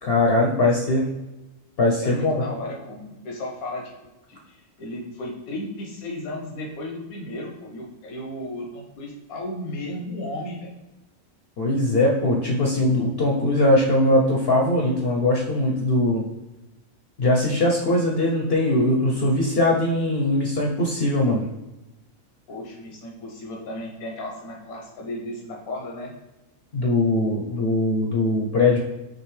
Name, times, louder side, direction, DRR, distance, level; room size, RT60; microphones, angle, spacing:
voice 1, 0.0-1.1 1.8-2.4 11.6-16.2 17.2-21.4 26.7-28.8, left 1 dB, 55° left, -1 dB, 0.8 m, -21 dB
voice 2, 2.0-3.9 4.3-10.7 22.5-26.1, left 1 dB, 90° left, -1 dB, 1.4 m, -34 dB
6.0 x 2.7 x 3.2 m, 1.0 s
omnidirectional pair, 1.4 m